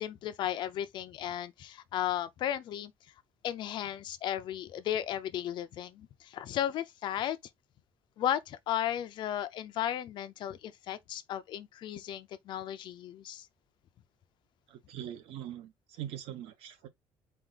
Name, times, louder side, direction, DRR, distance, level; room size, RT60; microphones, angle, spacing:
voice 1, 0.0-2.9 3.4-7.4 8.2-13.5, left 11 dB, 55° left, 0.6 m, -35 dB
voice 2, 14.7-15.7 16.0-16.9, right 11 dB, 85° right, 1.0 m, -42 dB
4.7 x 2.5 x 3.8 m
cardioid pair, 165°, 9 cm